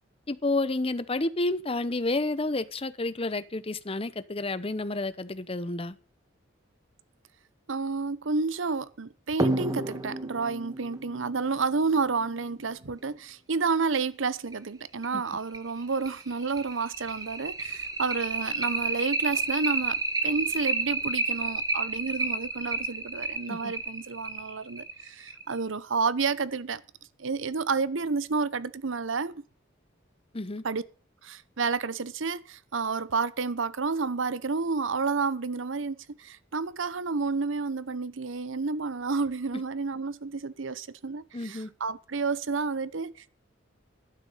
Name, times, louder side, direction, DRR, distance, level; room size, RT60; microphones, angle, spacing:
voice 1, 0.3-5.9 15.1-15.2 23.5-23.7 30.3-30.6 41.3-41.7, left 2 dB, 30° left, 0.8 m, -30 dB
voice 2, 7.7-26.8 27.2-29.4 30.6-30.8 31.2-43.3, right 4 dB, 70° right, 0.8 m, -30 dB
sound 1, 9.4-12.6 14.0-14.1 14.5-14.6 15.0-15.1 15.5-25.6, right 3 dB, 20° right, 1.5 m, -31 dB
12.0 x 9.6 x 5.6 m
head